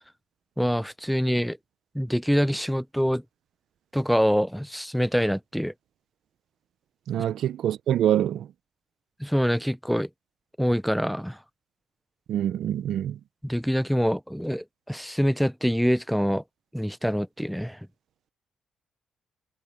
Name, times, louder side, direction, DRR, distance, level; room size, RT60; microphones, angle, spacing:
voice 1, 0.6-1.6 1.9-3.2 3.9-5.7 9.2-10.1 10.6-11.4 13.4-16.4 16.7-17.8, equal, ahead, 0.6 m, -25 dB
voice 2, 7.1-8.5 12.3-13.2, right 11 dB, 70° right, 0.8 m, -25 dB
cardioid pair, 90°, 0 cm